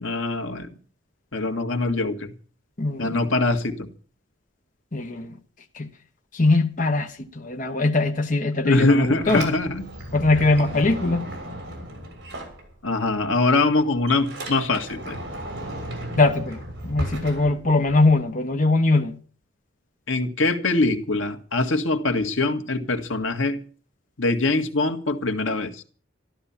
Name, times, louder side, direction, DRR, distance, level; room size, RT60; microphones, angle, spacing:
voice 1, 0.0-0.7 1.3-2.3 3.0-3.9 8.6-9.9 12.8-15.2 20.1-23.6 24.2-25.8, left 2 dB, 80° left, 1.9 m, -23 dB
voice 2, 2.8-3.3 4.9-5.3 5.7-5.9 6.3-9.5 10.1-11.2 16.2-19.1, left 2 dB, 40° left, 1.1 m, -21 dB
Sliding door, 8.8-13.1 13.4-18.2, right 1 dB, 55° right, 6.7 m, -35 dB
13.5 x 13.0 x 7.3 m
head